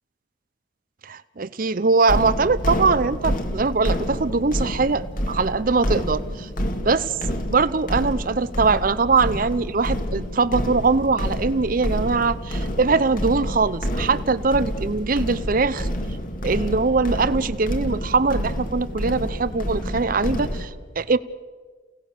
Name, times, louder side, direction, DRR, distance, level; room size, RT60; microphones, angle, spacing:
voice 1, 1.0-6.5 6.8-15.9 16.4-21.2, right 4 dB, 45° right, 16 dB, 0.7 m, -22 dB
sound 1, 2.1-20.6, equal, 45° left, 2.1 m, -28 dB
29.5 x 18.0 x 6.7 m, 1.5 s
head